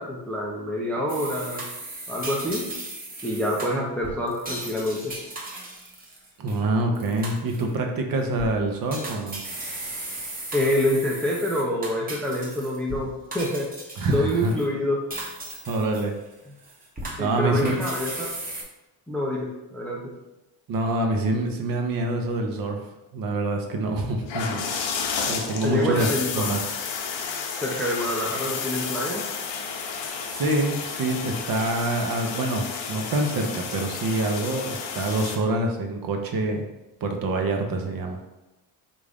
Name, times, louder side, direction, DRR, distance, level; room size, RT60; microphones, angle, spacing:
voice 1, 0.0-1.6 2.1-2.6 3.2-5.1 10.5-13.7 14.1-15.0 16.5-16.6 17.2-18.3 19.1-20.1 25.6-26.5 27.6-29.2, left 1 dB, 5° left, -2 dB, 0.4 m, -26 dB
sound 1, 1.1-6.6 6.9-7.7 8.2-8.5 8.9-13.0 13.3-14.7 15.1-16.3 16.6-18.6, right 2 dB, 20° right, 0.8 m, -36 dB
voice 2, 6.4-9.4 14.0-14.5 15.7-16.1 17.2-17.8 20.7-22.8 23.1-24.7 25.3-26.1 26.3-26.6 30.3-36.6 37.0-38.2, right 2 dB, 45° right, 3 dB, 0.6 m, -26 dB
sound 2, 24.2-35.4, left 6 dB, 65° left, 0.7 m, -31 dB
3.5 x 2.6 x 3.4 m, 0.98 s
cardioid pair, 100°, 48 cm